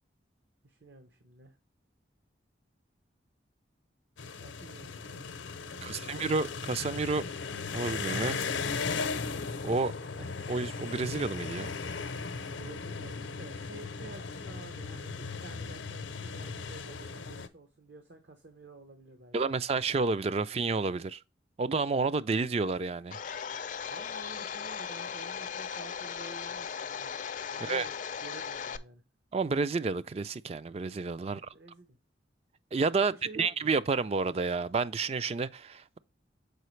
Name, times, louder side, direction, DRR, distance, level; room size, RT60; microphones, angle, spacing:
voice 1, 0.6-1.6 4.4-6.2 12.6-19.4 23.9-27.1 27.5-27.9 28.2-29.0 31.4-32.0 33.0-33.7, right 2 dB, 65° right, 0.9 m, -50 dB
sound 1, 4.2-17.5, left 4 dB, 85° left, 0.7 m, -37 dB
voice 2, 5.8-7.3 7.7-8.4 9.6-9.9 10.5-11.7 19.3-21.2 21.6-23.2 27.6-27.9 29.3-31.4 32.7-36.0, right 4 dB, 35° right, 0.3 m, -30 dB
Domestic sounds home sounds, 23.1-28.8, left 7 dB, 45° left, 0.4 m, -38 dB
6.7 x 5.0 x 3.1 m
head